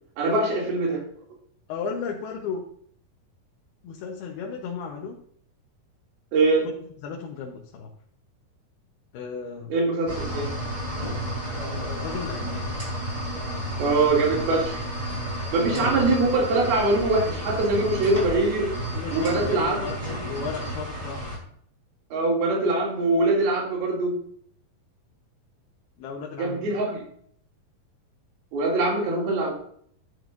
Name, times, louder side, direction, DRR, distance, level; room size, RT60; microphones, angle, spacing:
voice 1, 0.2-1.0 6.3-6.6 9.7-10.5 13.8-14.9 15.5-18.7 19.1-19.9 22.1-24.1 26.4-27.0 28.5-29.5, right 2 dB, 80° right, -2 dB, 4.6 m, -23 dB
voice 2, 1.7-2.7 3.8-5.2 7.0-7.9 9.1-9.7 11.5-12.7 15.6-16.1 18.9-21.2 26.0-26.8, left 5 dB, 85° left, 0 dB, 3.1 m, -35 dB
sound 1, 10.1-21.4, equal, 10° right, 3.8 m, -32 dB
11.0 x 10.5 x 2.7 m, 0.62 s
omnidirectional pair, 4.4 m